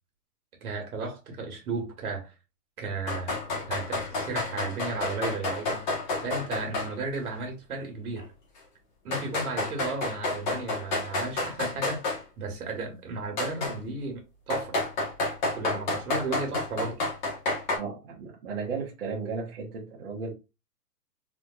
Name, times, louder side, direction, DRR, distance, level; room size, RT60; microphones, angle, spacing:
voice 1, 0.6-2.3 2.8-3.4 3.6-5.8 6.2-8.3 9.0-14.8 15.5-17.0, right 3 dB, 60° right, 1.5 m, -34 dB
sound 1, 3.1-6.9 7.2-7.3 8.2-8.3 9.1-12.2 13.4-13.8 14.5-17.8, left 2 dB, 30° left, 1.0 m, -30 dB
voice 2, 17.8-20.3, right 5 dB, 35° right, 0.9 m, -35 dB
3.4 x 2.8 x 2.3 m
hypercardioid pair, 170°, 49 cm